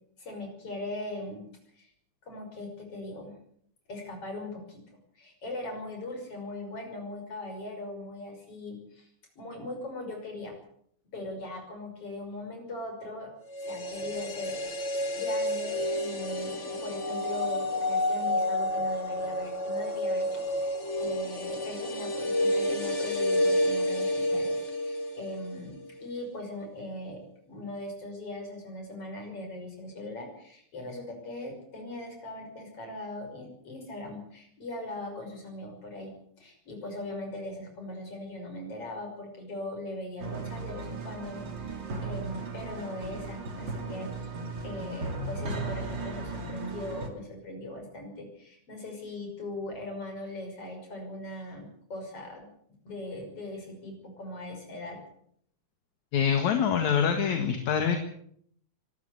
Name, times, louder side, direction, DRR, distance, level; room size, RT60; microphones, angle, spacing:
voice 1, 0.2-1.5 1.7-1.9 2.2-3.4 3.9-4.8 5.2-9.1 9.4-10.6 11.1-13.3 13.6-44.3 44.6-52.5 52.9-55.0, left 1 dB, 50° left, 4 dB, 6.9 m, -40 dB
sound 1, 13.5-25.6 25.9-26.0, left 1 dB, 25° left, 2.1 m, -30 dB
sound 2, 40.2-47.1, right 3 dB, 40° right, 3.1 m, -36 dB
voice 2, 56.1-58.0, left 7 dB, 70° left, 5 dB, 3.1 m, -25 dB
24.0 x 13.5 x 8.3 m, 0.67 s
omnidirectional pair, 3.4 m